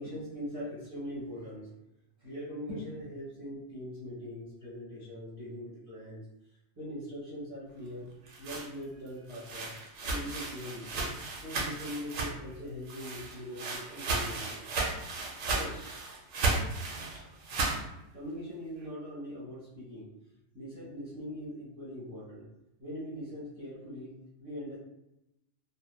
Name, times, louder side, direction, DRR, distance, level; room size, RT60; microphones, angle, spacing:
voice 1, 0.0-1.7 2.2-6.2 6.7-8.1 8.4-9.7 10.0-11.1 11.4-14.6 15.5-15.8 17.2-17.6 18.1-20.1 20.5-22.5 22.8-24.8, equal, 15° right, -10 dB, 1.0 m, -41 dB
sound 1, 8.0-12.6 12.9-17.8, right 3 dB, 75° right, 1.0 m, -34 dB
3.0 x 2.1 x 2.2 m, 0.89 s
omnidirectional pair, 1.4 m